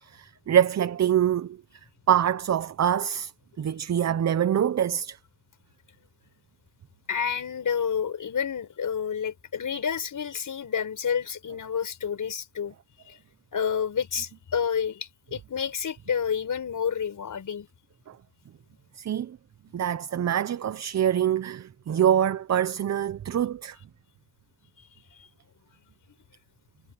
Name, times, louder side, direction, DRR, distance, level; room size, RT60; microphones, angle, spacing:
voice 1, 0.0-1.6 2.1-3.3 3.6-5.2 18.1-18.2 19.0-19.4 19.7-23.8, right 9 dB, 40° right, 0.8 m, -25 dB
voice 2, 7.1-12.8 13.1-13.2 13.5-17.7 24.8-25.3, left 7 dB, 50° left, 5.2 m, -29 dB
cardioid pair, 105°, 41 cm